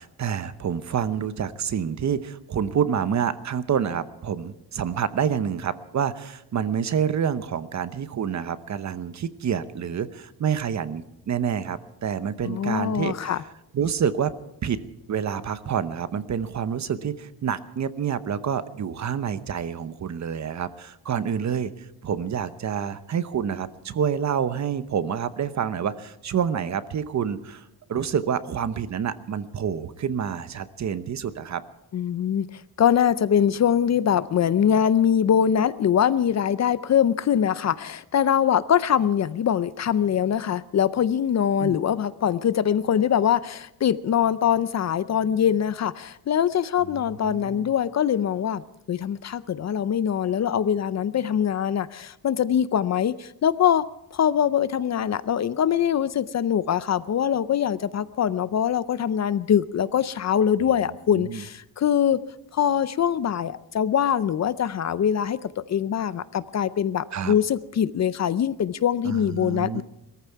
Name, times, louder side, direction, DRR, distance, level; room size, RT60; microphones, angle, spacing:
voice 1, 0.0-13.3 13.7-14.3 14.6-14.8 15.1-21.7 22.0-31.6 41.6-41.8 47.2-47.7 60.6-60.7 61.1-61.4 67.1-67.3 69.0-69.8, right 8 dB, 45° right, 13 dB, 0.9 m, -28 dB
voice 2, 12.4-13.4 31.9-48.6 48.9-53.8 54.1-62.2 62.5-69.8, left 9 dB, 45° left, 16 dB, 0.5 m, -23 dB
21.5 x 14.5 x 4.6 m, 0.86 s
wide cardioid pair, 150°, 37 cm